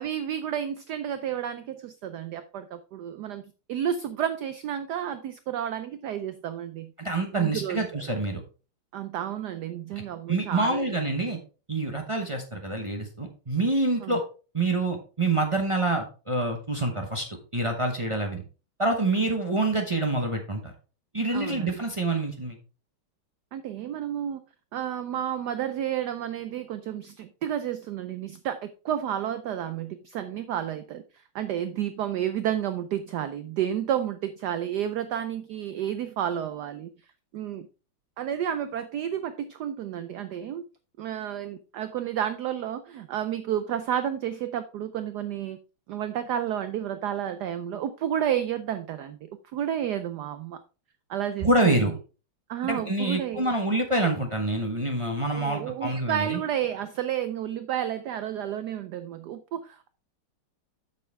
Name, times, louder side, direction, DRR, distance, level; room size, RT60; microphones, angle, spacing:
voice 1, 0.0-3.4 3.7-6.9 7.3-8.1 8.9-10.9 14.0-14.2 21.3-21.7 23.5-24.4 24.7-31.0 31.3-36.9 37.3-37.7 38.2-40.6 41.0-45.6 45.9-50.6 51.1-51.8 52.5-53.5 55.3-59.9, right 10 dB, 80° right, 11 dB, 0.9 m, -31 dB
voice 2, 7.0-8.4 10.3-11.4 11.7-14.2 14.5-17.3 17.5-18.4 18.8-20.7 21.1-22.6 51.4-51.9 52.6-56.4, right 2 dB, 55° right, 2 dB, 0.3 m, -26 dB
8.0 x 6.8 x 3.3 m, 0.35 s
omnidirectional pair, 2.4 m